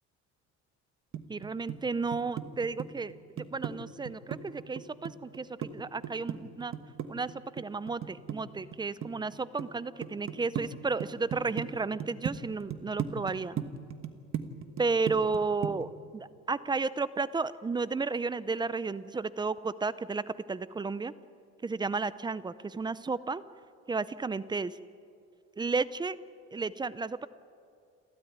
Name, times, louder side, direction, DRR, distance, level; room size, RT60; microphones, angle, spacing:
sound 1, 1.1-1.8 2.1-3.7 4.0-5.7 6.0-8.8 9.0-9.7 10.0-10.7 11.0-11.7 12.0-12.3 12.7-15.4 15.6-15.8, right 9 dB, 45° right, 1.4 m, -35 dB
voice 1, 1.3-5.5 5.7-6.7 7.1-13.6 14.8-21.1 21.6-23.4 23.9-24.8 25.6-26.2 26.5-27.3, right 4 dB, 15° right, 16 dB, 0.6 m, -33 dB
29.0 x 13.0 x 9.5 m, 2.4 s
cardioid pair, 135°, 29 cm